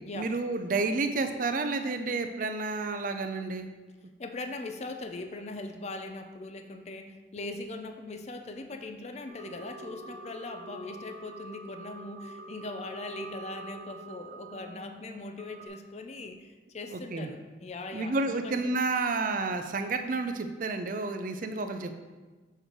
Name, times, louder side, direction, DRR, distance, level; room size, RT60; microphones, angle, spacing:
voice 1, 0.1-3.7 16.9-17.3 17.9-21.9, right 3 dB, 45° right, 7 dB, 0.5 m, -30 dB
voice 2, 4.2-18.7, left 2 dB, 35° left, 6 dB, 0.5 m, -40 dB
sound 1, 9.3-15.7, right 2 dB, 80° right, 1.0 m, -45 dB
6.5 x 3.3 x 5.9 m, 1.3 s
head